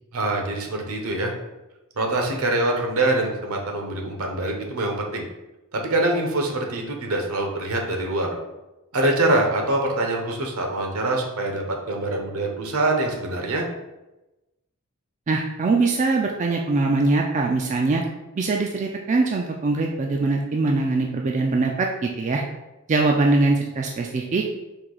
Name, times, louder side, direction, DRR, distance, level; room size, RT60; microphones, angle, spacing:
voice 1, 0.1-1.3 2.0-5.2 5.7-8.3 8.9-13.6, right 2 dB, 75° right, 2 dB, 0.9 m, -24 dB
voice 2, 15.3-18.0 18.4-22.4 22.9-24.6, right 3 dB, 35° right, 1 dB, 0.3 m, -22 dB
4.5 x 2.7 x 3.9 m, 1.0 s
head